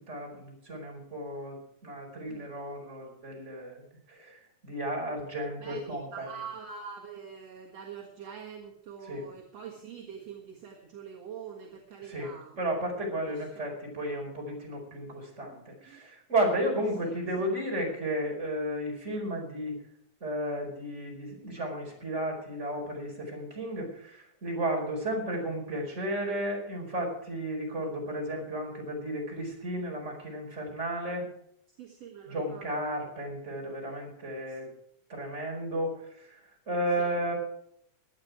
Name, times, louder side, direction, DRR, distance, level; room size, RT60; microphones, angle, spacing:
voice 1, 0.1-3.8 4.1-6.3 9.0-9.2 12.1-19.8 20.2-31.3 32.3-34.7 35.1-36.4 36.7-37.3, right 1 dB, 20° right, 0 dB, 5.0 m, -33 dB
voice 2, 5.6-12.7 13.2-13.6 15.4-15.6 15.9-16.0 17.0-17.1 31.8-32.9 34.5-34.6 37.0-37.1, right 7 dB, 60° right, -2 dB, 2.7 m, -45 dB
17.5 x 11.0 x 4.8 m, 0.74 s
omnidirectional pair, 3.4 m